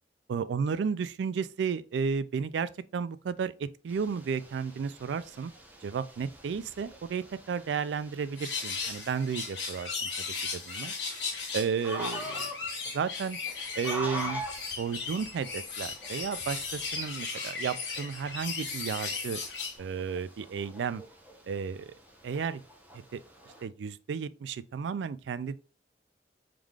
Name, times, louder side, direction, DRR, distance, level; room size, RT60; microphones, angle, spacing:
voice 1, 0.3-5.5 5.8-10.1 10.5-10.9 11.5-12.5 12.9-13.4 13.8-14.4 14.8-19.4 19.8-21.0 21.5-21.9 22.2-22.6 23.1-23.2 23.6-25.6, right 6 dB, 80° right, 0.3 m, -33 dB
sound 1, 3.9-23.6, equal, 10° right, 0.8 m, -45 dB
sound 2, 8.4-19.8, left 4 dB, 90° left, 1.4 m, -36 dB
4.8 x 3.7 x 2.3 m
head